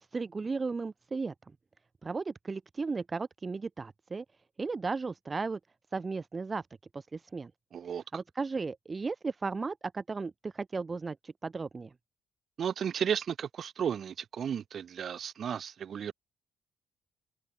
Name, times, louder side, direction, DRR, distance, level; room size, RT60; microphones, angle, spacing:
voice 1, 0.1-1.3 2.0-4.2 4.6-5.6 5.9-6.7 6.9-7.5 8.1-11.9, right 4 dB, 30° right, 0.5 m, -35 dB
voice 2, 7.7-8.0 12.6-16.1, right 8 dB, 55° right, 1.7 m, -34 dB
cardioid pair, 90°, 0 cm